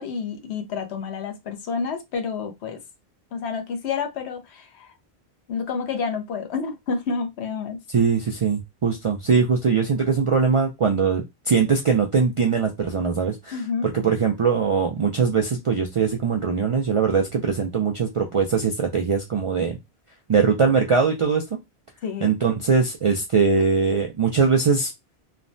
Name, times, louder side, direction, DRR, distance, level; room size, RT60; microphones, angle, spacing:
voice 1, 0.0-2.8 3.3-4.9 5.5-7.8 13.5-13.9 22.0-22.3, left 5 dB, 85° left, 1.0 m, -29 dB
voice 2, 7.9-13.6 13.8-19.8 20.3-21.4 22.2-24.9, right 5 dB, 60° right, 0.3 m, -21 dB
3.2 x 2.1 x 2.5 m
omnidirectional pair, 1.1 m